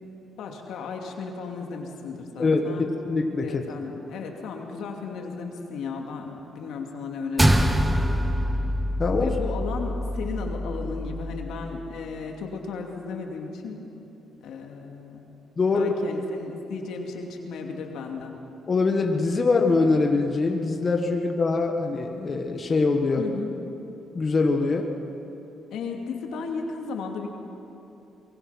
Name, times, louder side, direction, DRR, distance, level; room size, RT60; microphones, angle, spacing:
voice 1, 0.4-2.9 3.4-7.8 9.2-13.8 14.4-15.3 15.7-18.4 23.2-23.5 25.7-27.3, left 4 dB, 80° left, 2 dB, 2.5 m, -35 dB
voice 2, 3.1-3.9 9.0-9.4 15.6-15.9 18.7-23.2 24.1-24.9, left 3 dB, 35° left, 3 dB, 1.5 m, -23 dB
sound 1, 7.4-12.0, equal, 10° right, 1.3 m, -25 dB
23.0 x 22.0 x 5.8 m, 2.9 s
cardioid pair, 90°, 0 cm